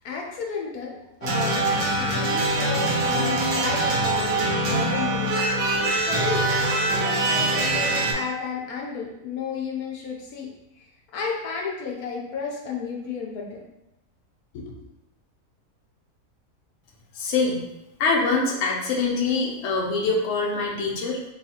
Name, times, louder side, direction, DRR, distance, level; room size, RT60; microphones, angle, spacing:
voice 1, 0.0-0.9 1.2-1.7 2.0-5.3 6.0-6.5 6.9-10.5 10.8-13.6 14.5-14.7, left 5 dB, 80° left, -1 dB, 1.2 m, -32 dB
sound 1, 1.2-8.1, right 2 dB, 75° right, 1.2 m, -23 dB
voice 2, 17.1-17.6 18.0-21.2, left 3 dB, 60° left, -2 dB, 0.9 m, -24 dB
3.1 x 2.4 x 4.2 m, 0.90 s
omnidirectional pair, 1.6 m